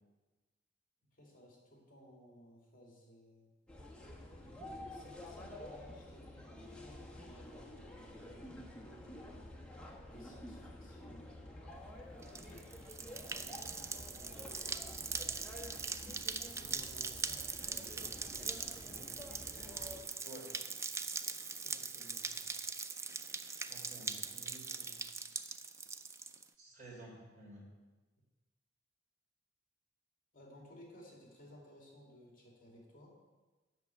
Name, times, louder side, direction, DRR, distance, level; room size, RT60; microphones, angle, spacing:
voice 1, 1.1-3.5 4.4-9.5 10.1-11.4 12.2-15.5 16.5-19.3 21.6-22.5 30.3-33.1, equal, 45° left, -1 dB, 2.5 m, -58 dB
sound 1, 3.7-20.0, left 1 dB, 5° left, 1.2 m, -50 dB
sound 2, 12.2-26.4, right 4 dB, 15° right, 0.3 m, -42 dB
voice 2, 23.5-25.0 26.6-27.7, right 1 dB, 40° right, -4 dB, 3.4 m, -53 dB
8.1 x 6.6 x 8.0 m, 1.2 s
head